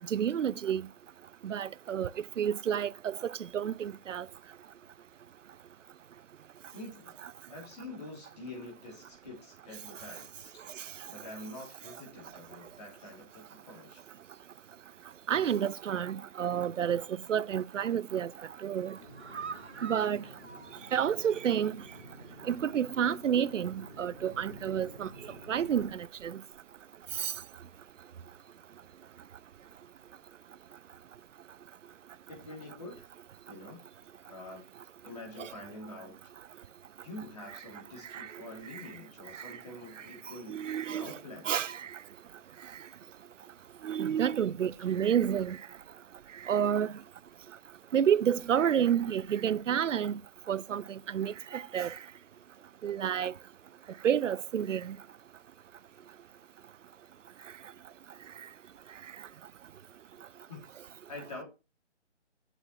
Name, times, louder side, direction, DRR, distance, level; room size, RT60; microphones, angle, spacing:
voice 1, 0.1-0.9 1.4-2.1 2.4-4.3 10.8-10.9 15.3-18.3 18.6-19.0 19.8-20.2 20.9-21.8 22.4-26.4 27.1-27.3 35.4-35.5 38.1-38.4 38.7-38.9 39.3-39.6 40.5-41.2 41.4-42.0 43.8-45.6 46.4-46.9 47.9-50.2 50.5-52.0 52.8-53.3 54.0-55.0, right 9 dB, 85° right, 0.5 m, -30 dB
voice 2, 6.7-7.2 7.5-10.5 11.1-14.0 32.3-33.0 33.5-33.8 34.3-34.6 35.0-36.2 36.4-36.7 37.0-40.6 41.0-41.7 44.7-44.8 60.5-60.6 61.1-61.4, left 2 dB, 30° left, 3.0 m, -46 dB
sound 1, 17.5-17.9 18.2-21.6 22.0-22.1 22.4-22.5, right 5 dB, 65° right, 1.1 m, -45 dB
sound 2, 18.9-25.9, equal, 10° left, 3.2 m, -51 dB
7.9 x 6.1 x 2.9 m
figure-of-eight pair, 170°, 36 cm